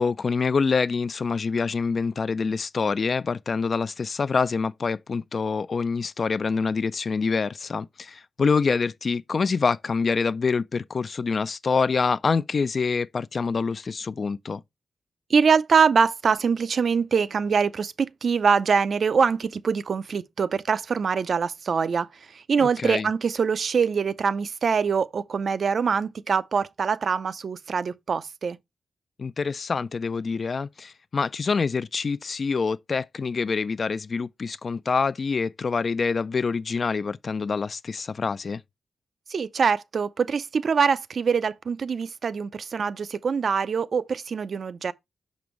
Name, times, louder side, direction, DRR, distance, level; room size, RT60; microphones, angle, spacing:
voice 1, 0.0-14.6 22.8-23.1 29.2-38.6, left 5 dB, 50° left, 0.3 m, -26 dB
voice 2, 15.3-28.6 39.3-44.9, right 6 dB, 60° right, 0.4 m, -24 dB
6.0 x 5.2 x 3.0 m
cardioid pair, 95°, 0 cm